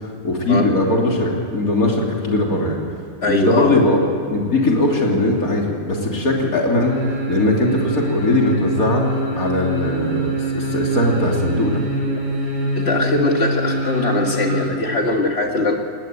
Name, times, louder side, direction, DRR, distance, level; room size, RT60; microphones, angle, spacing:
voice 1, 0.2-2.8 3.3-4.0 4.3-7.0 7.3-9.0 9.3-11.8, left 2 dB, 90° left, 0 dB, 3.6 m, -19 dB
voice 2, 3.2-3.7 12.8-15.8, left 2 dB, 45° left, 2 dB, 2.4 m, -21 dB
sound 1, 6.8-14.7 15.0-15.1, right 1 dB, 60° right, 6.4 m, -24 dB
20.0 x 19.5 x 9.1 m, 2.6 s
omnidirectional pair, 1.5 m